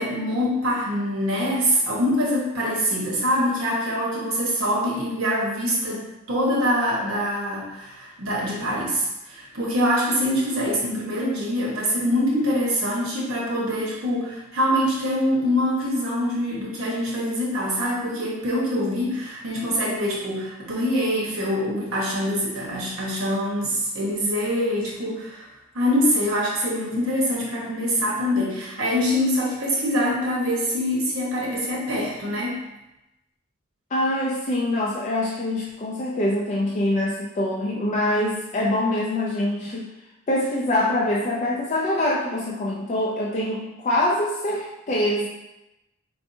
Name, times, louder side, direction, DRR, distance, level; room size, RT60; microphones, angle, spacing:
voice 1, 0.0-25.5 25.7-32.6, equal, 65° right, -5 dB, 1.1 m, -24 dB
voice 2, 33.9-39.9 40.3-45.3, left 1 dB, 35° left, -4 dB, 0.4 m, -24 dB
4.5 x 2.6 x 2.6 m, 0.94 s
head